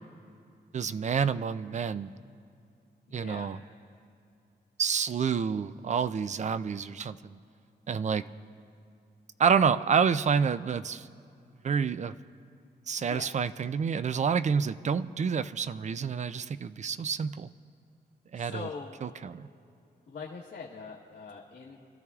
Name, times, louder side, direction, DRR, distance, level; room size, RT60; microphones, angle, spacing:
voice 1, 0.7-2.1 3.1-3.6 4.8-7.4 7.9-8.3 9.4-11.1 11.6-12.2 12.9-17.5 18.3-18.7 19.0-19.5, right 6 dB, 45° right, 14 dB, 0.4 m, -28 dB
voice 2, 3.1-3.5 13.0-13.3 18.3-19.0 20.1-21.8, left 5 dB, 70° left, -4 dB, 1.2 m, -42 dB
28.5 x 13.5 x 2.4 m, 2.6 s
wide cardioid pair, 115°, 18 cm